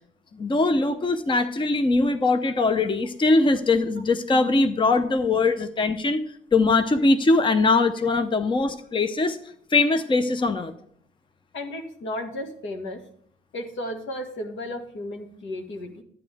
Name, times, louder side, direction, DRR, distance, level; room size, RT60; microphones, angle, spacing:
voice 1, 0.4-6.2 6.5-9.4 9.7-10.7, left 3 dB, 25° left, 9 dB, 0.7 m, -21 dB
voice 2, 11.5-13.0 13.5-16.0, left 1 dB, 75° left, 4 dB, 1.8 m, -34 dB
11.0 x 9.3 x 3.5 m, 0.64 s
cardioid pair, 90°, 20 cm